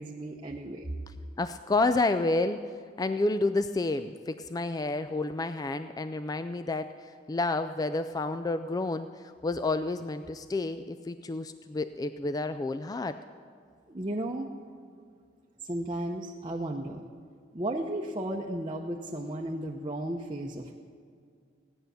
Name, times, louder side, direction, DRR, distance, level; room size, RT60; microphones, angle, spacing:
voice 1, 0.0-0.9 13.9-14.5 15.6-17.1 17.5-20.7, right 1 dB, 25° right, 0 dB, 0.7 m, -34 dB
voice 2, 1.1-13.2, left 2 dB, 20° left, 11 dB, 0.3 m, -30 dB
16.5 x 10.0 x 6.8 m, 2.2 s
head